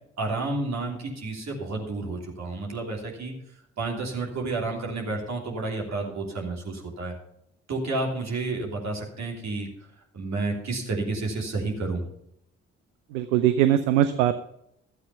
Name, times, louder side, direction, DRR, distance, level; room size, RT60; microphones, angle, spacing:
voice 1, 0.2-3.3 3.8-7.1 7.7-9.7 10.1-12.0, right 3 dB, 45° right, 0 dB, 3.1 m, -30 dB
voice 2, 13.1-14.3, right 11 dB, 75° right, 11 dB, 0.7 m, -21 dB
13.5 x 8.2 x 5.6 m, 0.76 s
figure-of-eight pair, 40°, 36 cm